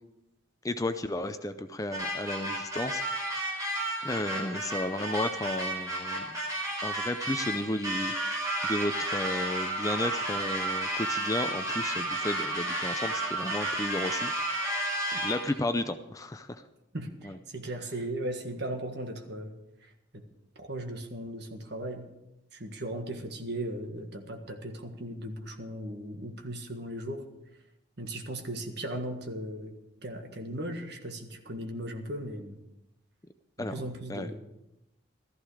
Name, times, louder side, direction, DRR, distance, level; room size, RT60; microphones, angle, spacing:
voice 1, 0.6-3.4 4.0-6.4 6.8-14.6 15.1-16.6 17.2-17.4 33.6-33.8 34.1-34.3, left 1 dB, 15° left, 9 dB, 0.5 m, -33 dB
sound 1, 1.9-15.6, right 1 dB, 15° right, 5.0 m, -32 dB
voice 2, 16.9-19.5 19.8-20.2 20.6-22.1 22.5-27.3 28.0-29.7 30.0-32.6 33.6-34.4, right 1 dB, 55° right, 4 dB, 1.7 m, -37 dB
15.0 x 14.0 x 4.9 m, 0.92 s
head